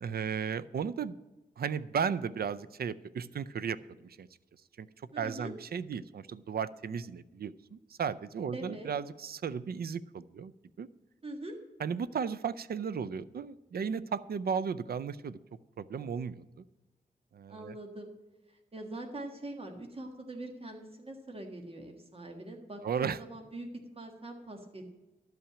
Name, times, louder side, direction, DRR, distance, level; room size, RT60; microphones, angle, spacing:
voice 1, 0.0-1.2 1.6-4.3 4.8-4.9 5.2-10.5 10.8-10.9 11.8-15.4 15.8-16.5 17.3-17.7 22.8-23.2, right 6 dB, 65° right, 16 dB, 0.5 m, -35 dB
voice 2, 5.1-5.5 8.5-8.9 11.2-11.6 17.5-18.1 18.5-24.8, right 2 dB, 35° right, 3 dB, 1.6 m, -43 dB
12.0 x 5.8 x 8.7 m, 1.1 s
wide cardioid pair, 95°, 17 cm